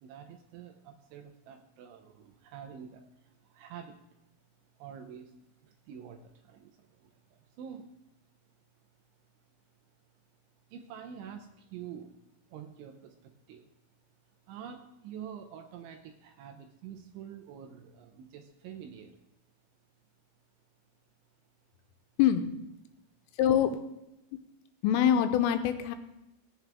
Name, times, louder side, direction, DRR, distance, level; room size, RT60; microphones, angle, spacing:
voice 1, 0.0-4.2 4.8-7.9 10.7-12.2 12.5-13.7 14.5-19.2, right 8 dB, 80° right, 6 dB, 2.9 m, -47 dB
voice 2, 22.2-22.5 23.4-23.7 24.8-26.0, left 10 dB, 85° left, 8 dB, 3.2 m, -24 dB
17.5 x 8.0 x 3.4 m, 0.89 s
omnidirectional pair, 5.9 m